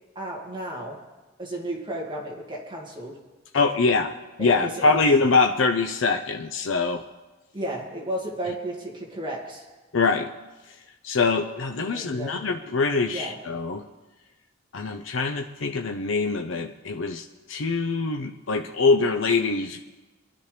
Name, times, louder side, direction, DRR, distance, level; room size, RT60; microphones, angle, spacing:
voice 1, 0.2-1.0 1.4-3.2 4.4-5.0 7.5-9.6 11.9-12.5 13.1-13.4, right 1 dB, 25° right, -2 dB, 2.1 m, -33 dB
voice 2, 3.5-7.0 9.9-10.3 11.0-13.8 14.7-19.8, left 4 dB, 70° left, 4 dB, 0.6 m, -24 dB
23.0 x 12.0 x 3.3 m, 1.2 s
head